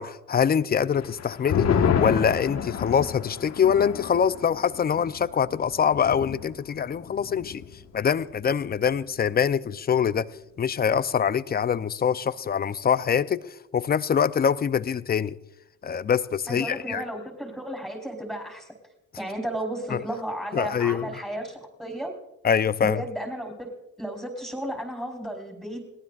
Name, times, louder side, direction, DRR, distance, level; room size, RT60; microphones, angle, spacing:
voice 1, 0.0-1.7 2.0-7.6 7.9-10.3 10.6-15.3 15.8-17.0 19.9-20.0 20.5-21.1 22.4-23.0, left 7 dB, 30° left, 0.6 m, -24 dB
sound 1, 0.9-7.8 8.1-8.2 8.6-9.1, left 7 dB, 65° left, 1.5 m, -29 dB
voice 2, 16.5-18.7 19.2-22.1 22.8-23.7 24.0-25.9, right 1 dB, 5° right, 3.8 m, -33 dB
29.5 x 18.5 x 2.5 m
cardioid pair, 85°, 29 cm